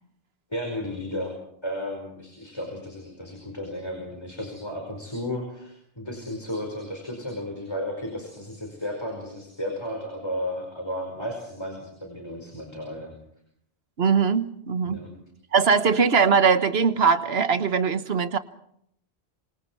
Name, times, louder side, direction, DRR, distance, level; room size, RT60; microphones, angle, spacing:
voice 1, 0.5-1.3 1.6-13.1 14.8-15.1, left 1 dB, 25° left, 2 dB, 5.1 m, -33 dB
voice 2, 14.0-15.0 15.5-18.4, right 5 dB, 80° right, 11 dB, 1.4 m, -21 dB
26.5 x 25.5 x 4.7 m, 0.72 s
omnidirectional pair, 1.0 m